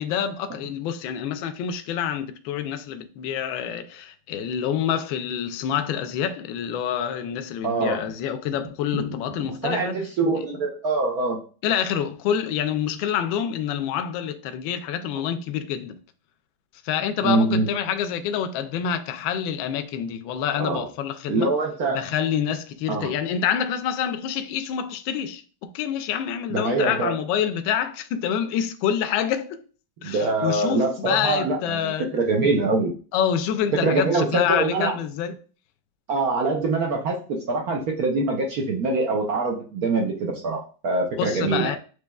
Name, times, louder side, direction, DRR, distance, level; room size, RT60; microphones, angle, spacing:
voice 1, 0.0-10.0 11.6-16.0 16.8-21.5 21.9-25.4 25.7-29.6 30.0-32.1 33.1-35.4 41.2-41.8, left 9 dB, 75° left, 1.2 m, -27 dB
voice 2, 7.6-8.1 8.9-9.4 9.6-11.4 15.1-15.3 17.2-17.7 20.6-20.8 21.3-22.0 22.9-23.1 26.5-27.1 30.0-32.9 33.8-35.0 36.1-37.2 37.5-41.8, right 3 dB, 65° right, 0.9 m, -24 dB
6.2 x 3.0 x 2.3 m
omnidirectional pair, 2.3 m